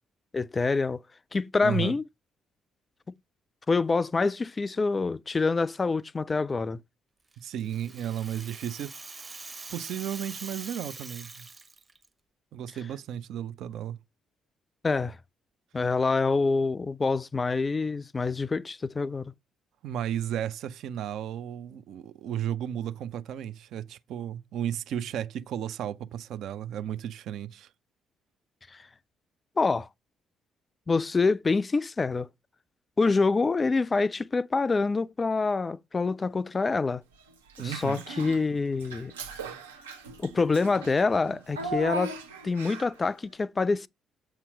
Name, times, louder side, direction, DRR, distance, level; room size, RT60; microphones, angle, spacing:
voice 1, 0.3-1.0 1.3-2.0 3.7-6.8 14.8-15.2 15.7-19.3 28.7-28.8 29.6-29.9 30.9-32.3 33.0-37.0 37.6-39.1 40.2-42.2 42.4-43.9, left 4 dB, 30° left, 0.3 m, -26 dB
voice 2, 1.6-2.0 7.4-8.9 9.7-11.5 12.5-14.0 19.8-27.7 37.6-38.0, right 10 dB, 60° right, 0.5 m, -34 dB
Rattle (instrument), 7.3-12.1, right 3 dB, 25° right, 0.9 m, -43 dB
Child speech kid speaking / Bathtub (filling or washing), 37.5-38.4 38.8-43.0, right 2 dB, 80° right, 0.8 m, -38 dB
7.6 x 2.9 x 5.0 m
figure-of-eight pair, 45°, 0 cm